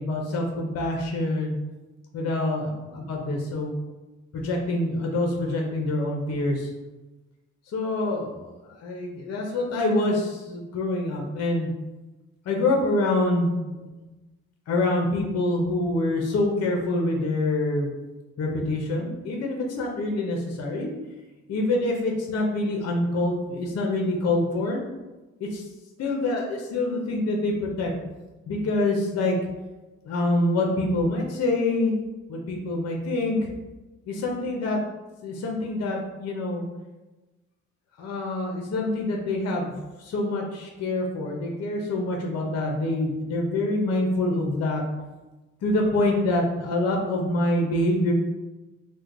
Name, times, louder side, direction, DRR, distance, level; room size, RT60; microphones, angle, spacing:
voice 1, 0.0-1.6 2.1-3.8 4.3-6.7 7.7-11.7 12.5-13.9 14.7-17.9 18.4-20.9 21.5-24.8 25.4-25.6 26.0-27.9 28.5-29.4 30.0-32.0 32.3-33.5 34.1-34.8 35.2-36.6 38.0-44.8 45.6-48.1, left 2 dB, 55° left, 0 dB, 0.7 m, -26 dB
3.0 x 2.2 x 3.7 m, 1.1 s
cardioid pair, 90°, 30 cm